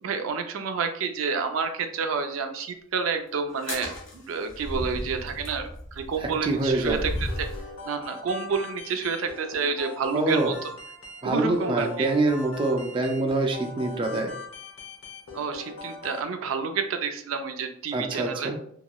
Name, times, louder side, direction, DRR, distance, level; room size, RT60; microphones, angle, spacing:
voice 1, 0.0-7.1 7.4-7.5 7.9-10.5 11.2-12.1 15.3-18.5, right 5 dB, 90° right, 7 dB, 0.4 m, -29 dB
sound 1, 3.5-7.7, equal, 70° left, 1.1 m, -35 dB
voice 2, 6.2-7.0 10.1-10.5 11.2-14.3 17.9-18.6, right 2 dB, 25° right, 3 dB, 0.4 m, -25 dB
sound 2, 7.2-16.2, left 4 dB, 85° left, 0.8 m, -41 dB
2.9 x 2.9 x 2.3 m, 0.65 s
head